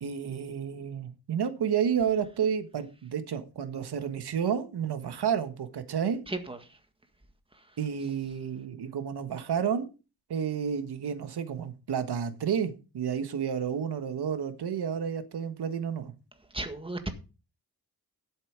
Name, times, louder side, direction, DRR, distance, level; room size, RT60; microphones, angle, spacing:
voice 1, 0.0-6.2 7.8-9.9 10.3-16.1, right 7 dB, 75° right, 1.5 m, -31 dB
voice 2, 6.3-6.8 7.5-7.7 16.5-17.1, right 2 dB, 15° right, 1.8 m, -35 dB
11.5 x 8.2 x 5.0 m
wide cardioid pair, 150°, 39 cm